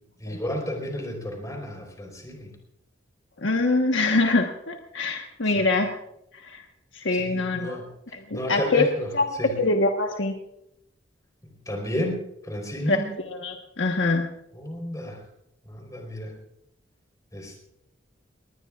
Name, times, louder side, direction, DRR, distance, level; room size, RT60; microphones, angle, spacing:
voice 1, 0.2-2.5 5.6-5.7 7.1-7.9 8.3-9.1 9.4-9.5 11.7-13.1 14.6-15.2 15.6-16.3 17.3-17.6, equal, 20° left, 2 dB, 4.4 m, -32 dB
voice 2, 3.4-5.9 6.3-6.6 6.9-7.8 8.1-8.9 9.1-10.4 12.9-13.0 13.3-14.3, left 3 dB, 85° left, 3 dB, 1.4 m, -24 dB
20.0 x 20.0 x 2.5 m, 0.79 s
head